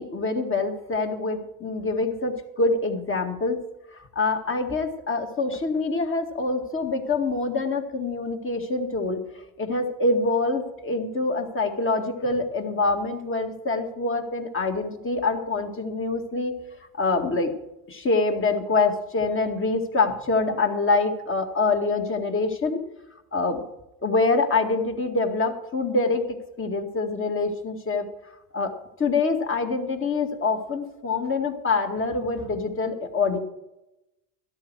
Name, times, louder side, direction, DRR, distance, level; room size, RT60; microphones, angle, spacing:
voice 1, 0.0-3.6 3.9-9.2 9.6-16.5 17.0-17.5 17.9-22.8 23.3-23.6 24.0-28.1 28.5-33.4, left 3 dB, 25° left, 5 dB, 2.0 m, -25 dB
12.5 x 11.5 x 4.8 m, 0.91 s
hypercardioid pair, 90°, 49 cm